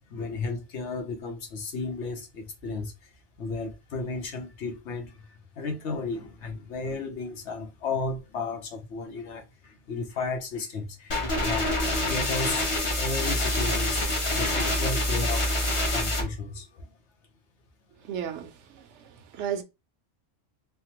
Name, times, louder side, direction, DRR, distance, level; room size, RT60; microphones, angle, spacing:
voice 1, 0.0-3.1 3.4-11.7 12.1-14.0 14.3-15.6 15.9-16.9, left 3 dB, 80° left, 1.1 m, -34 dB
sound 1, 11.1-16.2, left 1 dB, 30° left, 0.8 m, -26 dB
voice 2, 18.0-19.6, right 9 dB, 85° right, 0.9 m, -35 dB
3.5 x 2.0 x 2.8 m
omnidirectional pair, 1.2 m